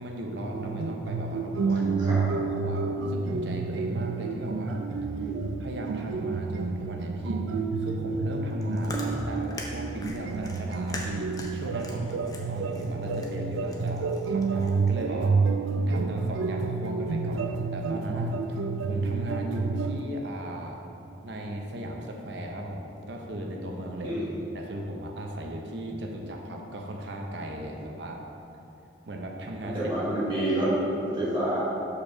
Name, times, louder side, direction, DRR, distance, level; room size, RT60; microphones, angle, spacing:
voice 1, 0.0-4.8 5.2-5.3 5.6-15.4 15.9-20.8 21.2-24.2 24.5-28.2 29.1-29.9, right 1 dB, 65° right, 1 dB, 0.7 m, -37 dB
sound 1, 0.5-20.0, right 4 dB, 90° right, 0.3 m, -29 dB
Chewing mastication, 8.4-14.9, left 1 dB, 20° left, 0.5 m, -42 dB
voice 2, 29.7-30.7 31.0-31.6, right 1 dB, 25° right, -9 dB, 1.5 m, -29 dB
5.1 x 4.7 x 5.7 m, 2.8 s
head